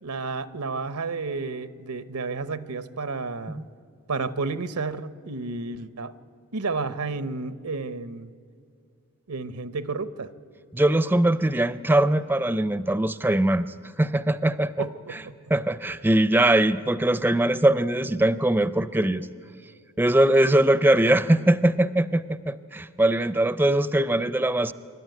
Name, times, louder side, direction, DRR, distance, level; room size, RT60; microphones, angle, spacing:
voice 1, 0.0-3.6 4.1-6.1 6.5-8.3 9.3-10.3 14.8-15.3, right 4 dB, 90° right, 14 dB, 0.9 m, -31 dB
voice 2, 10.7-14.9 15.1-15.2 15.5-19.3 20.0-24.7, right 1 dB, 10° right, 14 dB, 0.4 m, -21 dB
27.0 x 12.5 x 9.3 m, 2.4 s
head